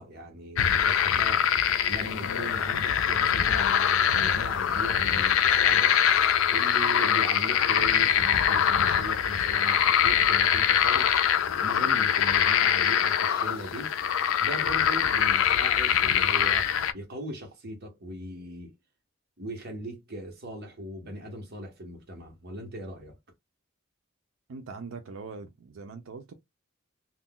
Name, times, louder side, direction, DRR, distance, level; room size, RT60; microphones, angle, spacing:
voice 1, 0.0-1.5 1.9-6.0 6.5-11.1 11.6-13.9 14.4-18.7 19.4-23.2, right 1 dB, 50° right, 1.0 m, -39 dB
sound 1, 0.6-16.9, left 9 dB, 80° left, 0.4 m, -23 dB
voice 2, 24.5-26.3, right 4 dB, 85° right, 0.5 m, -41 dB
2.4 x 2.2 x 3.6 m
head